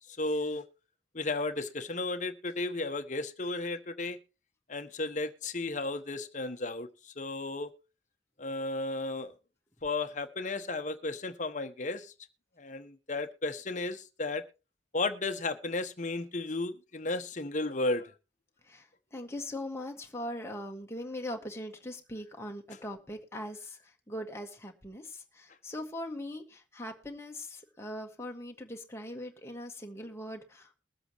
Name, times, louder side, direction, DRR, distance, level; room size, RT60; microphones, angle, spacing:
voice 1, 0.2-0.6 1.1-4.2 4.7-7.7 8.4-9.3 9.8-12.1 12.6-14.4 14.9-18.1, left 2 dB, 45° left, 1.1 m, -34 dB
voice 2, 19.1-30.8, left 1 dB, 15° left, 1.7 m, -41 dB
21.5 x 7.9 x 3.1 m
head